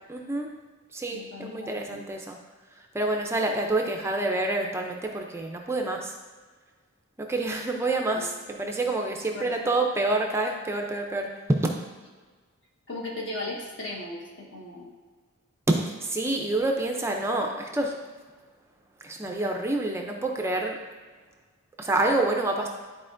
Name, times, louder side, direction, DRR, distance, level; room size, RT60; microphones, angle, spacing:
voice 1, 0.1-0.5 0.9-2.4 2.9-6.1 7.2-11.7 15.7-18.0 19.0-20.8 21.8-22.7, right 2 dB, 10° right, 2 dB, 0.4 m, -27 dB
voice 2, 1.1-2.0 8.1-8.2 9.3-9.5 12.9-14.9, left 2 dB, 55° left, -2 dB, 1.4 m, -37 dB
11.0 x 4.2 x 2.5 m, 1.4 s
head